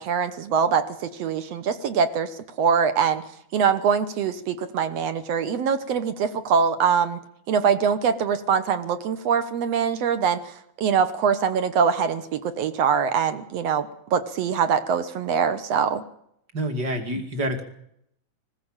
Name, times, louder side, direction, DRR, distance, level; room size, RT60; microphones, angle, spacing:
voice 1, 0.0-3.2 3.5-7.2 7.5-16.0, right 6 dB, 65° right, 11 dB, 2.1 m, -23 dB
voice 2, 16.5-17.6, right 1 dB, 35° right, 6 dB, 2.8 m, -27 dB
20.5 x 16.0 x 8.9 m, 0.74 s
omnidirectional pair, 3.5 m